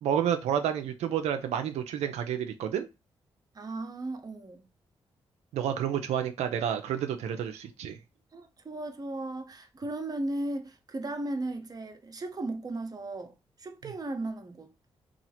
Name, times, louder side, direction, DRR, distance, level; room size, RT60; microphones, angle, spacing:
voice 1, 0.0-2.9 5.5-8.0, right 9 dB, 80° right, 0.4 m, -30 dB
voice 2, 3.5-4.6 8.3-13.3 13.6-14.7, right 2 dB, 35° right, 0.6 m, -36 dB
2.8 x 2.4 x 2.7 m
supercardioid pair, 45°, 11 cm